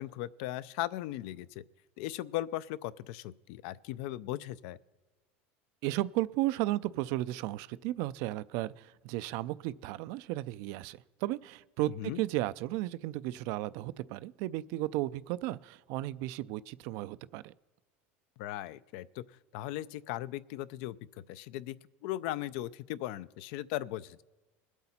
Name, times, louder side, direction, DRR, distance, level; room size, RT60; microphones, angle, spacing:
voice 1, 0.0-1.6 2.0-4.8 12.0-12.2 18.4-19.2 19.5-21.0 21.3-21.8 22.0-24.2, left 14 dB, 65° left, 16 dB, 0.4 m, -37 dB
voice 2, 5.8-17.5, right 17 dB, 60° right, 16 dB, 0.4 m, -34 dB
21.0 x 8.1 x 4.3 m, 1.2 s
supercardioid pair, 120°, 6 cm